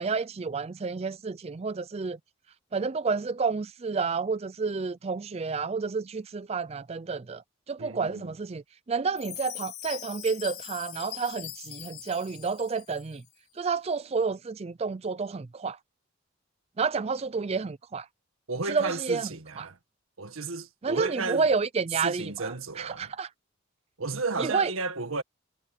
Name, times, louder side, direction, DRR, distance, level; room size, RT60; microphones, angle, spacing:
voice 1, 0.0-2.2 2.7-7.4 7.7-13.2 13.6-15.8 16.8-18.1 18.7-19.3 19.6-19.7 20.8-23.3 24.4-24.7, right 4 dB, 30° right, 0.4 m, -30 dB
voice 2, 7.8-8.3 18.5-19.8 20.2-21.5 21.9-23.1 24.0-25.2, right 3 dB, 90° right, 1.7 m, -33 dB
Chime, 9.2-13.2, left 13 dB, 50° left, 5.3 m, -41 dB
head